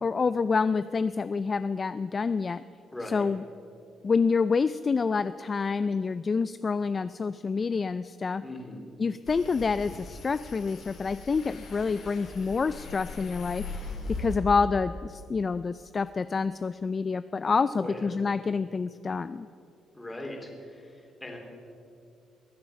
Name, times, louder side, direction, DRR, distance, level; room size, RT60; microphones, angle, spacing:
voice 1, 0.0-2.6 3.1-3.4 4.0-8.4 9.0-13.9 14.2-19.5, left 5 dB, 35° left, 14 dB, 0.3 m, -27 dB
voice 2, 2.9-3.3 8.4-8.8 17.7-18.1 19.9-21.4, left 1 dB, 15° left, 0 dB, 3.3 m, -39 dB
sound 1, 9.3-14.4, left 3 dB, 70° left, 3.0 m, -40 dB
22.5 x 8.2 x 5.9 m, 2.5 s
cardioid pair, 90°, 0 cm